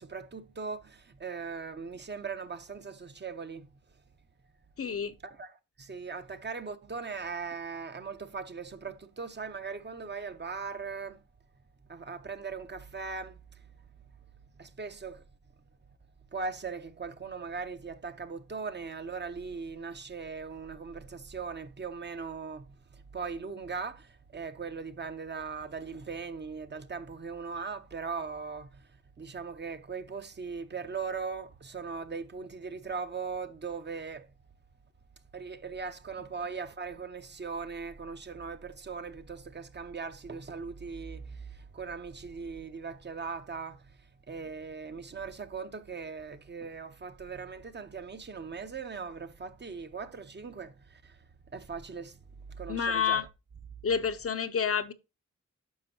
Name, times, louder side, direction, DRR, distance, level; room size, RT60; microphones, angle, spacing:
voice 1, 0.0-3.7 5.2-11.2 11.9-13.7 14.6-15.2 16.3-28.9 29.2-34.3 35.3-43.9 44.3-51.2 51.5-52.2 52.5-53.2, right 5 dB, 35° right, 0.7 m, -39 dB
voice 2, 4.8-5.1 52.7-53.3 53.8-54.9, left 7 dB, 50° left, 0.6 m, -29 dB
9.5 x 6.1 x 2.8 m
wide cardioid pair, 125°, 30 cm